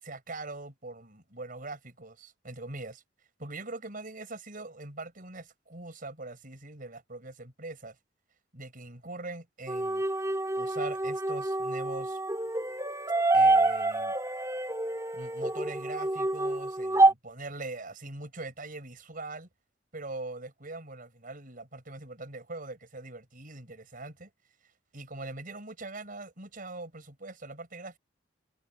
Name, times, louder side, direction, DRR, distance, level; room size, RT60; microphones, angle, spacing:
voice 1, 0.0-3.0 3.4-8.0 8.5-10.0 10.6-12.2 13.3-14.1 15.1-19.5 19.9-24.3 24.9-28.0, right 2 dB, 50° right, 5.9 m, -42 dB
sound 1, 9.7-17.1, right 2 dB, 20° right, 2.1 m, -27 dB
head